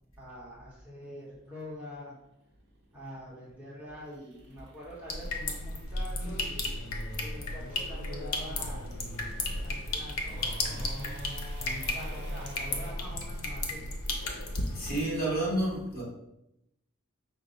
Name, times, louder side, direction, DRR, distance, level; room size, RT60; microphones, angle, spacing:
voice 1, 0.2-2.1 2.9-6.5 7.2-8.9 9.6-14.0, equal, 5° right, -7 dB, 1.1 m, -45 dB
sound 1, 1.0-12.9, right 1 dB, 50° right, 0.6 m, -49 dB
sound 2, 5.1-15.0, left 2 dB, 85° left, 0.7 m, -34 dB
voice 2, 14.7-16.0, right 1 dB, 45° left, -4 dB, 1.3 m, -30 dB
5.2 x 2.2 x 3.9 m, 0.84 s
head